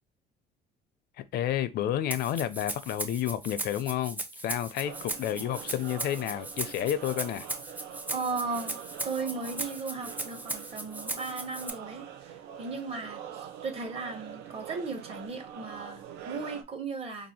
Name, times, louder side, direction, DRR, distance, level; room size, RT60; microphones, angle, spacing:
voice 1, 1.3-7.5, left 11 dB, 70° left, 0.5 m, -30 dB
Rattle (instrument), 2.1-11.7, right 1 dB, 10° right, 0.5 m, -37 dB
sound 1, 4.8-16.6, right 9 dB, 90° right, 0.6 m, -44 dB
voice 2, 8.1-8.7 9.0-17.3, right 4 dB, 35° right, 1.1 m, -36 dB
2.7 x 2.5 x 4.2 m
cardioid pair, 110°, 17 cm